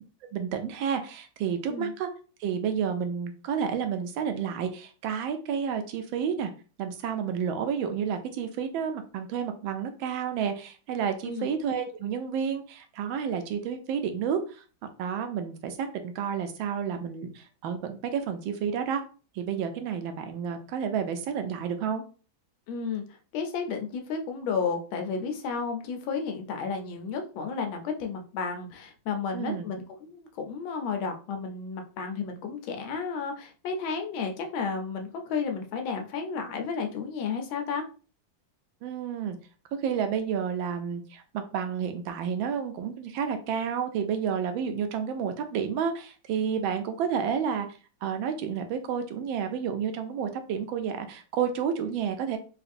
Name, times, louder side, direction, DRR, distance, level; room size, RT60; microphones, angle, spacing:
voice 1, 0.3-2.1 2.4-6.5 6.8-14.6 15.0-19.0 19.3-22.0 29.3-29.7 38.8-39.4 39.8-47.7 48.0-52.4, right 7 dB, 80° right, 7 dB, 1.3 m, -30 dB
voice 2, 22.7-23.0 23.3-37.8, left 5 dB, 85° left, 4 dB, 1.5 m, -32 dB
3.9 x 2.4 x 2.5 m, 0.37 s
omnidirectional pair, 2.1 m